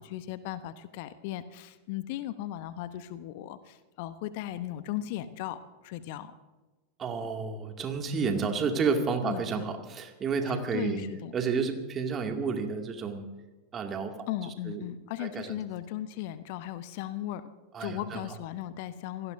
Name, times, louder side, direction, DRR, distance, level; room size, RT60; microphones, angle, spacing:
voice 1, 0.0-6.3 9.2-9.6 10.5-11.3 14.3-17.5 17.8-19.3, left 13 dB, 50° left, 13 dB, 0.9 m, -37 dB
voice 2, 7.0-11.1 11.3-13.3 13.7-14.2 14.7-14.8 15.2-15.6 17.7-18.2, right 5 dB, 25° right, 4 dB, 2.3 m, -30 dB
28.0 x 18.0 x 2.7 m, 1.2 s
figure-of-eight pair, 90°, 0 cm